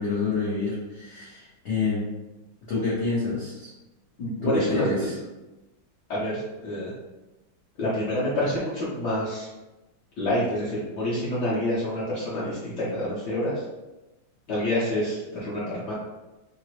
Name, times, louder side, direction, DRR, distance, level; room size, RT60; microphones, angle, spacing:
voice 1, 0.0-2.0 2.7-3.7 4.4-5.1, left 4 dB, 85° left, -9 dB, 0.6 m, -28 dB
voice 2, 4.2-5.1 6.1-6.9 7.8-9.5 10.2-13.6 14.5-15.9, left 1 dB, 65° left, -9 dB, 1.2 m, -27 dB
3.7 x 2.1 x 2.8 m, 1.0 s
omnidirectional pair, 2.4 m